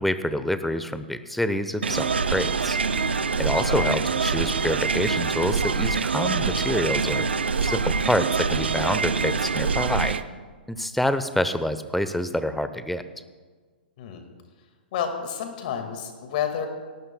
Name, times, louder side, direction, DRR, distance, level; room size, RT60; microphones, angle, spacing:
voice 1, 0.0-2.8 3.4-7.2 7.6-10.2 10.7-13.0, left 1 dB, ahead, 11 dB, 0.7 m, -27 dB
sound 1, 1.8-10.2, right 5 dB, 85° right, 0.6 m, -25 dB
voice 2, 3.6-4.0 14.0-14.2 14.9-16.7, left 8 dB, 50° left, 5 dB, 1.9 m, -30 dB
18.5 x 18.0 x 2.3 m, 1.5 s
hypercardioid pair, 120°, 6 cm